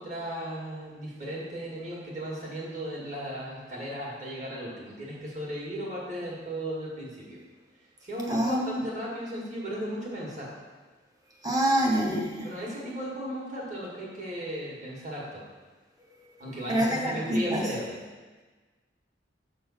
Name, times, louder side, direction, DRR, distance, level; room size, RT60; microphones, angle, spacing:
voice 1, 0.0-7.4 8.0-10.5 12.4-15.4 16.4-17.8, equal, 40° right, -5 dB, 1.8 m, -36 dB
voice 2, 8.3-8.9 11.4-12.5 16.7-17.6, right 1 dB, 20° right, 0 dB, 0.8 m, -26 dB
6.9 x 3.8 x 5.6 m, 1.3 s
head